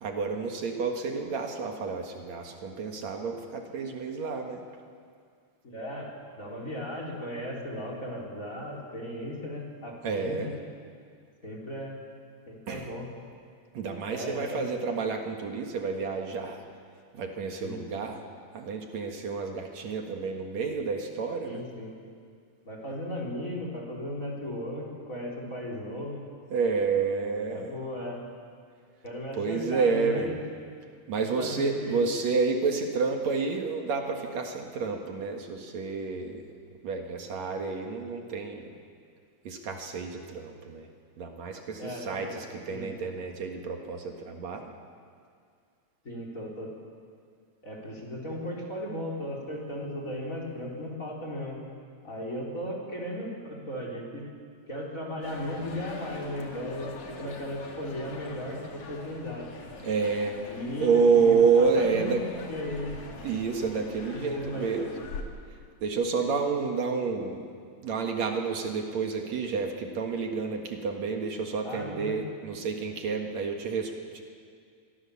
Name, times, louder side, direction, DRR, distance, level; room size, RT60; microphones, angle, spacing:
voice 1, 0.0-4.6 10.0-10.5 12.7-12.9 13.7-16.6 17.1-18.2 18.5-21.6 26.5-27.8 29.3-30.4 31.1-36.5 36.8-38.7 39.4-40.9 41.2-44.7 59.8-60.4 60.8-62.2 63.2-64.9 65.8-67.5 67.8-74.2, right 5 dB, 70° right, 3 dB, 2.9 m, -29 dB
voice 2, 5.6-10.5 11.4-12.0 12.5-13.1 14.1-14.7 17.6-17.8 21.4-22.0 22.6-26.2 27.5-28.2 29.0-30.4 31.2-32.0 41.8-42.9 46.0-46.7 47.6-51.6 52.0-54.2 54.7-59.5 60.5-62.9 64.1-64.7 71.6-72.2, left 1 dB, 25° left, -1 dB, 4.5 m, -36 dB
sound 1, 55.2-65.2, left 4 dB, 85° left, 3.8 m, -43 dB
24.0 x 23.5 x 7.2 m, 2.2 s
omnidirectional pair, 3.3 m